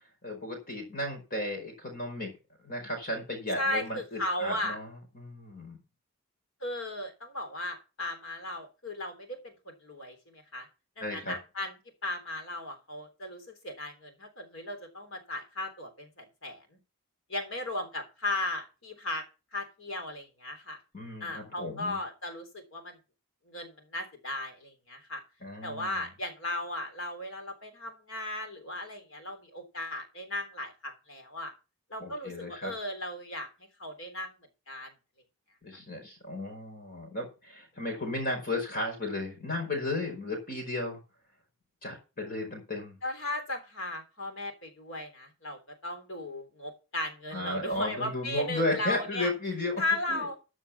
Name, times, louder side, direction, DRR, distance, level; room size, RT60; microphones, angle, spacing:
voice 1, 0.2-2.3 2.6-5.8 11.0-11.3 20.9-22.0 25.4-26.1 32.0-32.7 35.6-41.0 41.8-43.0 47.3-49.8 50.1-50.3, left 1 dB, 40° left, 3 dB, 4.9 m, -34 dB
voice 2, 3.6-4.8 6.6-10.7 11.0-11.7 12.0-16.8 17.3-19.2 19.5-20.8 21.2-23.0 23.5-25.2 25.6-31.5 31.9-33.5 33.8-34.3 34.7-34.9 43.0-49.3 49.8-50.4, left 1 dB, 60° left, 6 dB, 3.4 m, -36 dB
14.0 x 6.4 x 5.8 m, 0.31 s
head